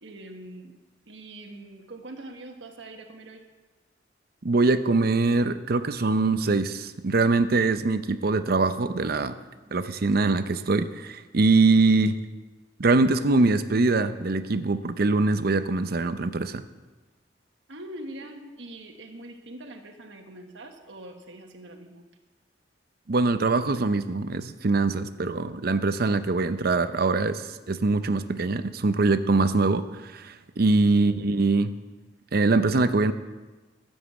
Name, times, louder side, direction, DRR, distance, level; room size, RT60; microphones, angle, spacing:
voice 1, 0.0-0.8 1.1-3.4 9.5-9.8 17.7-22.0 30.9-31.1, right 1 dB, 85° right, 3 dB, 1.3 m, -43 dB
voice 2, 4.4-9.3 9.7-12.2 12.8-16.6 23.1-31.7 32.3-33.1, right 3 dB, 55° right, 11 dB, 0.6 m, -23 dB
13.5 x 7.3 x 8.2 m, 1.2 s
head